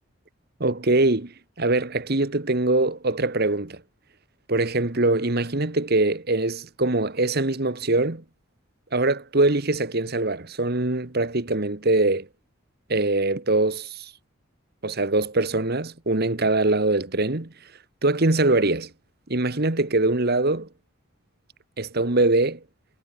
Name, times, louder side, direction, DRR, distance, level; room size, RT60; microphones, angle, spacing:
voice 1, 0.6-3.8 4.5-8.2 8.9-12.3 12.9-14.1 14.8-17.5 18.0-18.9 19.3-20.7 21.8-22.6, right 2 dB, 50° right, 1.5 m, -23 dB
head